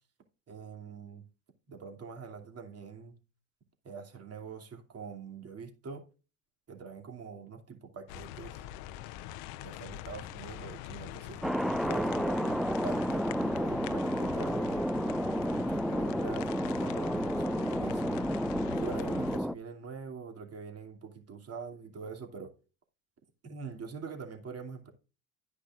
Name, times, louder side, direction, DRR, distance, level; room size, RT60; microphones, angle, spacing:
voice 1, 0.5-1.3 1.7-3.2 3.8-6.0 6.7-8.7 9.6-11.4 11.8-12.6 12.8-14.8 15.4-18.2 18.8-22.5 23.4-24.9, right 5 dB, 35° right, 4 dB, 2.7 m, -44 dB
sound 1, 8.1-19.4, left 12 dB, 60° left, 0.8 m, -43 dB
Thunder, 11.4-19.5, equal, ahead, 0.3 m, -31 dB
12.0 x 9.7 x 2.5 m, 0.33 s
hypercardioid pair, 70°, 41 cm